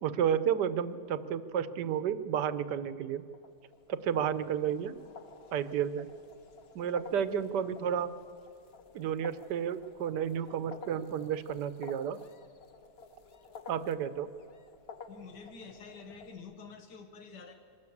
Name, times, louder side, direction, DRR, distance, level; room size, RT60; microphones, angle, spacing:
voice 1, 0.0-3.2 3.9-4.9 5.5-6.1 6.7-8.1 8.9-12.2 13.7-14.3, right 8 dB, 80° right, 13 dB, 1.4 m, -31 dB
sound 1, 3.3-16.4, left 4 dB, 45° left, 1.1 m, -52 dB
voice 2, 15.1-17.5, left 5 dB, 85° left, 5 dB, 1.8 m, -48 dB
23.5 x 13.0 x 8.5 m, 2.3 s
omnidirectional pair, 1.8 m